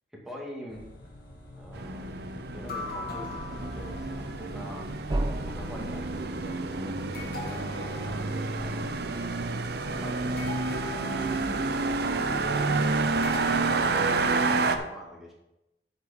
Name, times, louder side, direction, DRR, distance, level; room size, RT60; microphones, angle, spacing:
voice 1, 0.2-0.8 1.6-2.2 2.5-4.9 5.5-9.0 9.9-12.9 13.3-15.3, equal, ahead, -3 dB, 2.1 m, -44 dB
sound 1, 0.7-13.6, left 2 dB, 55° left, 2.1 m, -43 dB
sound 2, 1.7-14.8, right 3 dB, 60° right, 0.7 m, -29 dB
sound 3, 5.1-9.8, right 1 dB, 25° right, 0.5 m, -37 dB
8.1 x 6.7 x 5.0 m, 0.91 s
head